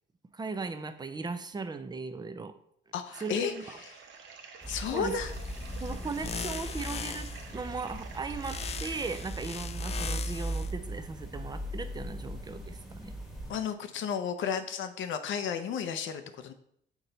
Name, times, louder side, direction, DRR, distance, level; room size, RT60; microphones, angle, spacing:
voice 1, 0.3-2.5 3.2-3.6 4.9-5.1 5.8-7.3 7.5-13.1, right 4 dB, 20° right, 10 dB, 0.5 m, -37 dB
voice 2, 2.9-4.0 4.7-5.3 13.5-16.5, left 7 dB, 75° left, 8 dB, 0.6 m, -33 dB
sound 1, 3.1-9.2, right 5 dB, 70° right, 0.8 m, -50 dB
sound 2, 4.6-13.5, right 1 dB, ahead, 1.4 m, -38 dB
sound 3, 5.3-7.5 8.4-10.7, left 7 dB, 30° left, 0.3 m, -40 dB
5.9 x 4.1 x 3.9 m, 0.68 s
cardioid pair, 90°, 20 cm